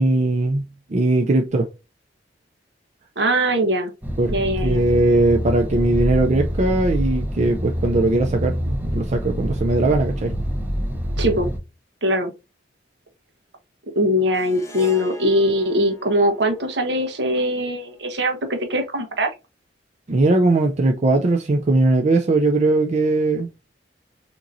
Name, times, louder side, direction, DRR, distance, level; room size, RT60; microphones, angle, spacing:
voice 1, 0.0-1.7 4.2-4.3 4.6-10.3 20.1-23.5, right 2 dB, 40° right, 0.5 m, -19 dB
voice 2, 3.2-3.9 4.3-4.8 11.2-11.5 12.0-12.3 13.9-19.3, equal, 70° right, 1.2 m, -21 dB
sound 1, 4.0-11.6, equal, 10° right, 0.8 m, -26 dB
Harp, 14.3-18.8, left 2 dB, 15° left, 0.7 m, -42 dB
6.5 x 3.0 x 2.6 m
head